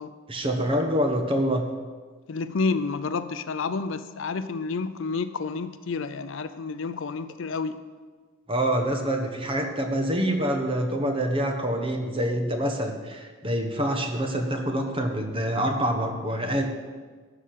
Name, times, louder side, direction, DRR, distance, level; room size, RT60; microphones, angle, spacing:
voice 1, 0.3-1.6 8.5-16.7, equal, 25° right, 3 dB, 1.1 m, -26 dB
voice 2, 2.3-7.8, left 4 dB, 60° left, 11 dB, 0.5 m, -30 dB
12.0 x 4.9 x 8.5 m, 1.4 s
head